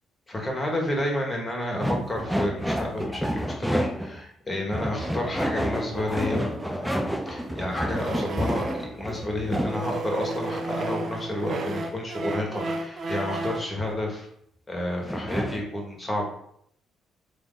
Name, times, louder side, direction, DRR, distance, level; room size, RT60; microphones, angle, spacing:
voice 1, 0.3-14.3 14.7-16.3, left 1 dB, 25° left, 0 dB, 1.5 m, -30 dB
sound 1, 1.8-4.2 4.7-9.8 15.0-15.6, equal, 5° right, 0.4 m, -29 dB
sound 2, 4.8-9.0 9.4-13.8, right 2 dB, 50° right, 0.6 m, -34 dB
3.5 x 3.0 x 4.0 m, 0.70 s
hypercardioid pair, 55°, 0 cm